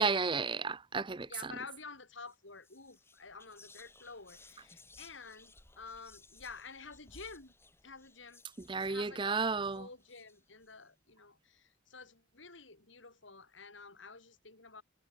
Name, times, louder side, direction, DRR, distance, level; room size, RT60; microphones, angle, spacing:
voice 1, 0.0-1.5 8.7-9.9, right 4 dB, 25° right, 0.6 m, -32 dB
voice 2, 1.3-7.5 7.8-8.4 8.9-14.8, left 4 dB, 75° left, 5.2 m, -50 dB
Whispering, 2.2-2.4 2.6-10.7, left 3 dB, 15° left, 4.9 m, -60 dB
head